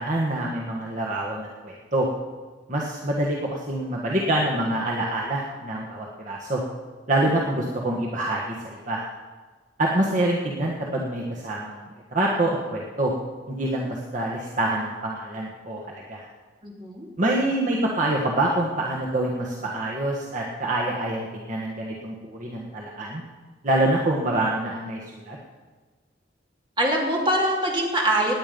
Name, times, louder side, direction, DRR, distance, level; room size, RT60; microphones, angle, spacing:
voice 1, 0.0-2.1 2.7-6.6 7.1-9.0 9.8-13.1 13.5-16.2 17.2-23.2 23.6-25.4, right 1 dB, 45° right, -3 dB, 1.6 m, -26 dB
voice 2, 16.6-17.1 26.8-28.3, right 1 dB, 25° right, -1 dB, 2.8 m, -23 dB
19.0 x 9.6 x 5.3 m, 1.4 s
head